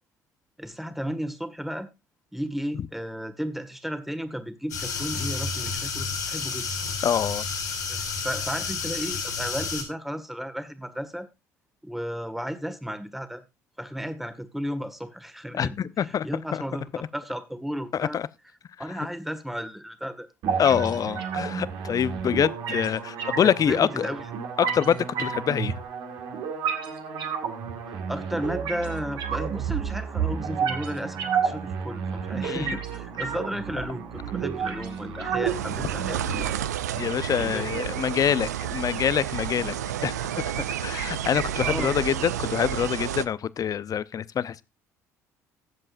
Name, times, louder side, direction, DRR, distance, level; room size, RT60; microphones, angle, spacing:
voice 1, 0.6-1.9 2.3-6.7 7.9-8.0 8.2-11.3 11.8-13.4 13.8-18.2 18.8-20.3 23.4-24.3 25.2-25.3 27.9-36.6 37.4-38.0 41.6-42.0, equal, ahead, 1.7 m, -34 dB
sound 1, 4.7-9.8, left 5 dB, 90° left, 3.1 m, -30 dB
voice 2, 7.0-7.4 15.5-16.3 16.5-16.6 17.9-18.3 20.6-24.1 24.6-25.7 32.4-32.8 37.0-39.8 40.0-44.6, left 8 dB, 45° left, 0.6 m, -25 dB
sound 2, 20.4-36.4, right 7 dB, 60° right, 1.9 m, -31 dB
sound 3, 35.4-43.2, right 10 dB, 85° right, 0.5 m, -30 dB
19.5 x 7.7 x 2.6 m
hypercardioid pair, 55°, 9 cm